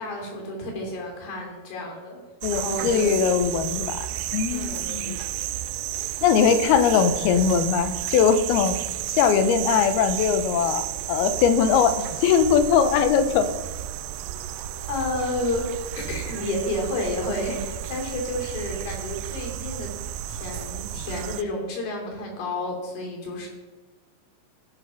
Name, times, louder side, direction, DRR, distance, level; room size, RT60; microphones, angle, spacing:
voice 1, 0.0-2.2 2.5-3.3 4.5-5.0 14.9-15.6 16.0-19.9 20.3-23.5, left 1 dB, 60° left, 0 dB, 4.7 m, -31 dB
voice 2, 2.4-4.1 4.3-5.2 6.2-8.8 9.1-13.5, left 7 dB, 75° left, 10 dB, 2.7 m, -21 dB
sound 1, 2.4-21.4, right 13 dB, 85° right, 2.0 m, -32 dB
16.0 x 6.2 x 5.7 m, 1.3 s
omnidirectional pair, 4.6 m